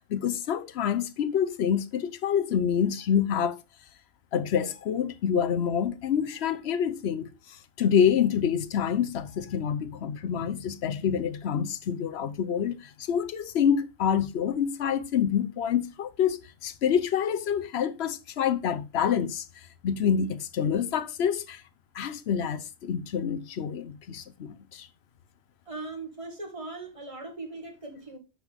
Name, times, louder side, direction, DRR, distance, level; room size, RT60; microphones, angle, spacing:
voice 1, 0.1-3.6 4.3-19.4 19.8-21.6 21.9-24.9, left 8 dB, 75° left, 1.0 m, -27 dB
voice 2, 25.7-28.2, right 3 dB, 30° right, 2.0 m, -39 dB
8.7 x 5.6 x 3.5 m
omnidirectional pair, 1.1 m